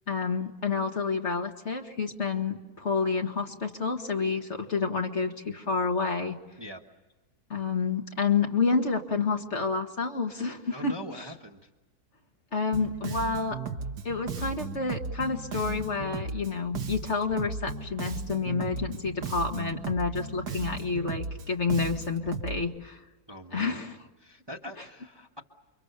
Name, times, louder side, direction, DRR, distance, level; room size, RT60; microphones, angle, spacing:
voice 1, 0.1-6.4 7.5-11.2 12.5-13.6 14.0-23.0 23.5-24.0, left 4 dB, 45° left, 4 dB, 2.0 m, -29 dB
voice 2, 10.7-11.7 23.3-23.8 24.2-25.4, equal, 15° right, 3 dB, 1.4 m, -42 dB
Bass guitar, 12.7-22.6, right 4 dB, 90° right, 2.0 m, -36 dB
29.5 x 24.5 x 6.8 m, 1.1 s
omnidirectional pair, 1.7 m